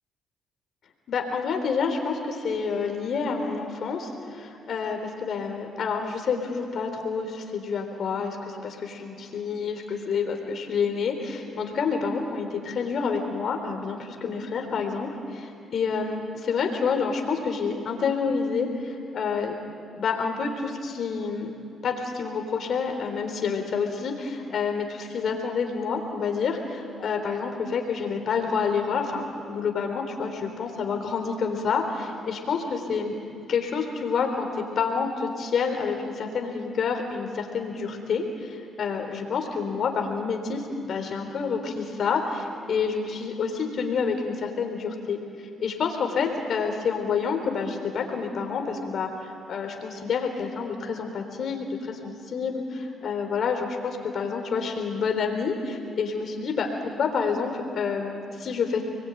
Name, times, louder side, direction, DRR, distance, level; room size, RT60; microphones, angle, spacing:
voice 1, 1.1-19.6 20.0-21.5 21.8-33.2 33.5-58.8, left 5 dB, 60° left, 4 dB, 3.7 m, -28 dB
30.0 x 21.5 x 9.2 m, 2.6 s
cardioid pair, 90°, 0 cm